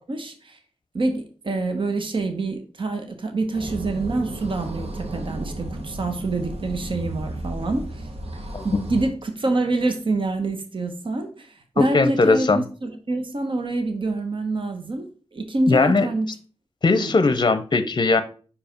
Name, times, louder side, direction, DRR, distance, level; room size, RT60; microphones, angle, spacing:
voice 1, 0.1-0.6 0.9-8.1 8.6-16.3 16.9-17.1, right 2 dB, 50° right, 6 dB, 1.0 m, -26 dB
sound 1, 3.5-9.1, right 1 dB, 70° right, 1.3 m, -33 dB
voice 2, 11.8-12.6 15.7-16.1 16.8-18.2, left 3 dB, 40° left, 12 dB, 0.6 m, -19 dB
5.6 x 4.7 x 5.1 m, 0.39 s
wide cardioid pair, 100°, 11 cm